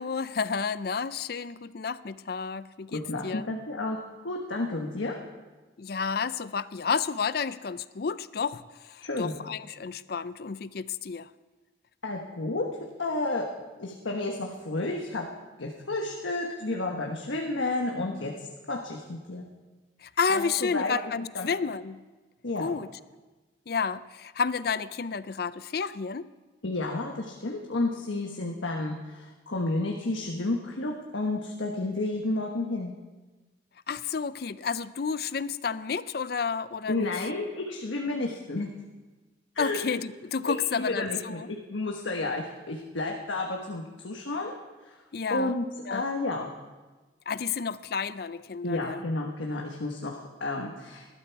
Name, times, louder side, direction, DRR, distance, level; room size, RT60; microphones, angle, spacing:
voice 1, 0.0-3.5 5.8-8.6 8.9-11.3 20.0-22.0 22.6-22.9 23.7-26.3 33.9-37.1 39.6-41.5 45.1-45.5 45.9-46.0 47.3-49.0, left 5 dB, 50° left, 15 dB, 0.5 m, -31 dB
voice 2, 2.9-5.2 9.0-9.3 12.0-12.7 13.0-13.5 13.8-15.3 15.6-19.5 20.3-21.0 21.3-21.5 22.4-22.7 26.6-32.9 36.9-38.7 39.5-39.8 40.5-44.6 44.9-45.0 45.3-46.5 48.6-51.1, left 2 dB, 85° left, 0 dB, 1.3 m, -31 dB
19.5 x 12.5 x 4.6 m, 1.2 s
head